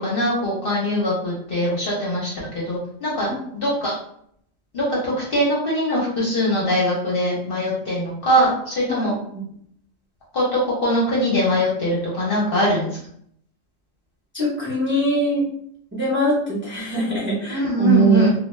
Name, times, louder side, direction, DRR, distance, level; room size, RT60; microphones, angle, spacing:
voice 1, 0.0-4.0 4.7-9.1 10.3-13.0 17.5-18.3, equal, 50° left, -5 dB, 0.8 m, -22 dB
voice 2, 14.3-15.4 15.9-18.2, right 3 dB, 10° right, -6 dB, 0.7 m, -21 dB
2.2 x 2.2 x 3.1 m, 0.68 s
omnidirectional pair, 1.4 m